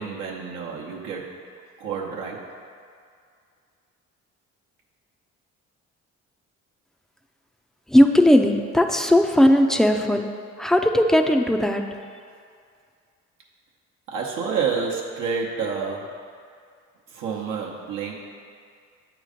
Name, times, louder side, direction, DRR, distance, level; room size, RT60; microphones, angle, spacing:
voice 1, 0.0-1.3 1.8-2.5 14.1-16.2 17.1-18.1, right 5 dB, 85° right, -3 dB, 0.9 m, -29 dB
voice 2, 7.9-10.3 10.6-11.8, left 1 dB, ahead, 5 dB, 0.3 m, -17 dB
8.2 x 3.1 x 5.0 m, 2.2 s
cardioid pair, 90°, 30 cm